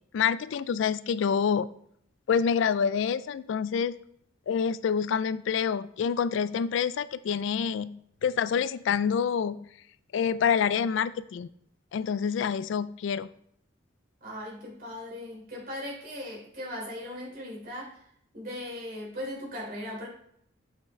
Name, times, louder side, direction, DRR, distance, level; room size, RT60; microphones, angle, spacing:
voice 1, 0.1-1.7 2.3-3.9 4.5-9.7 10.1-11.5 11.9-13.3, left 7 dB, 65° left, 16 dB, 0.3 m, -27 dB
voice 2, 14.2-17.9 18.3-20.1, left 1 dB, 45° right, -3 dB, 3.3 m, -38 dB
7.8 x 5.8 x 3.2 m, 0.69 s
head